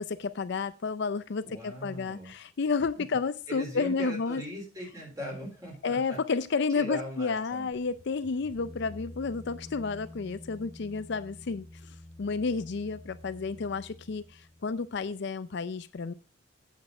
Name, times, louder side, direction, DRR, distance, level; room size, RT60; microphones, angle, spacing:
voice 1, 0.0-4.4 5.8-16.1, left 4 dB, 55° left, 13 dB, 0.5 m, -31 dB
voice 2, 1.4-2.3 3.5-6.2 6.7-7.7, equal, 15° right, -1 dB, 4.1 m, -39 dB
sound 1, 7.7-15.1, left 1 dB, 40° left, 1.1 m, -49 dB
8.6 x 7.3 x 4.7 m, 0.34 s
head